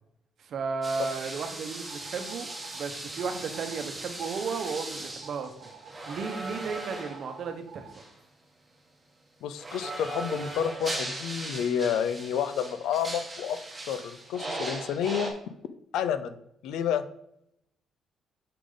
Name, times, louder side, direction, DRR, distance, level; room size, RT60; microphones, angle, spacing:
voice 1, 0.4-5.7 6.1-7.9, right 5 dB, 65° right, 7 dB, 1.0 m, -34 dB
sound 1, 0.8-7.4 7.9-8.1 9.6-15.3, right 2 dB, 20° right, 1.8 m, -38 dB
sound 2, 1.9-2.8 3.2-3.9 4.2-4.8 5.2-7.9, right 7 dB, 85° right, 0.5 m, -49 dB
voice 2, 9.4-13.6 13.9-15.3 15.9-17.0, left 8 dB, 85° left, 12 dB, 0.5 m, -30 dB
6.7 x 5.0 x 3.9 m, 0.78 s
cardioid pair, 90°, 0 cm